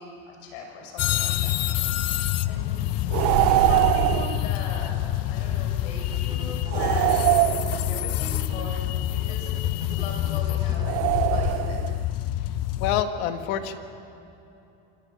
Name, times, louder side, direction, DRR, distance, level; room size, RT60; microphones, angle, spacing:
voice 1, 0.0-1.6 1.9-2.1 2.5-3.0 3.3-11.9, left 3 dB, 90° left, 2 dB, 7.1 m, -40 dB
sound 1, 1.0-13.0, left 13 dB, 50° left, 0.9 m, -27 dB
sound 2, 3.1-4.4 6.7-8.1 10.8-12.0, right 19 dB, 65° right, 0.5 m, -23 dB
sound 3, 5.4-5.7 6.1-11.1, right 3 dB, 15° right, 0.8 m, -43 dB
voice 2, 12.8-13.7, left 9 dB, 70° left, 7 dB, 1.9 m, -26 dB
25.5 x 18.0 x 9.2 m, 2.8 s
supercardioid pair, 120°, 31 cm